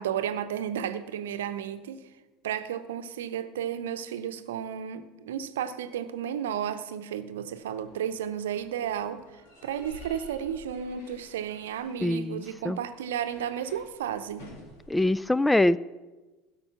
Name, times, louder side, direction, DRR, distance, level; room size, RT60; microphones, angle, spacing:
voice 1, 0.0-2.0 2.4-9.2 9.6-14.4, right 9 dB, 70° right, 10 dB, 0.8 m, -33 dB
sound 1, 7.5-15.1, left 1 dB, 65° left, 3.5 m, -52 dB
voice 2, 12.0-12.8 14.9-15.8, left 1 dB, 10° left, 19 dB, 0.3 m, -24 dB
16.0 x 6.6 x 5.8 m, 1.2 s
figure-of-eight pair, 70°, 0 cm